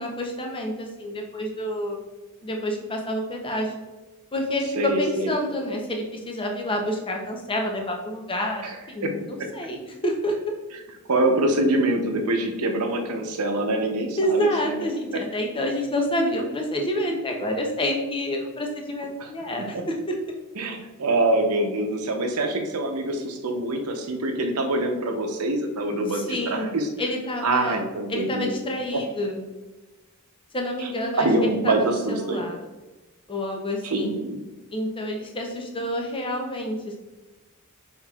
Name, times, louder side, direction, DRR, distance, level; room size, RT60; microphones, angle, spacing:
voice 1, 0.0-2.0 2.4-3.8 4.3-10.5 14.2-19.9 26.1-26.7 27.0-27.8 28.1-29.4 30.5-31.3 31.6-32.6 33.3-34.2 34.7-37.0, left 1 dB, 25° left, 2 dB, 0.6 m, -28 dB
voice 2, 4.7-5.4 8.6-8.8 9.0-9.5 11.1-14.8 19.2-19.3 19.6-19.8 20.6-26.9 27.4-28.5 28.9-29.0 30.8-32.5 33.8-34.4, right 2 dB, 80° right, 4 dB, 0.7 m, -25 dB
5.8 x 3.6 x 2.3 m, 1.1 s
head